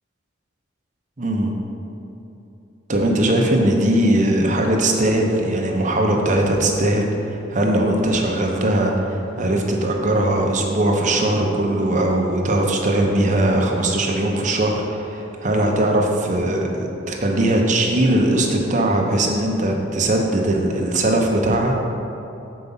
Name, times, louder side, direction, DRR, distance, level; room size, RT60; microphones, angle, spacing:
voice 1, 1.2-1.5 2.9-21.7, right 1 dB, 35° right, 1 dB, 0.8 m, -20 dB
6.7 x 4.7 x 5.5 m, 2.9 s
head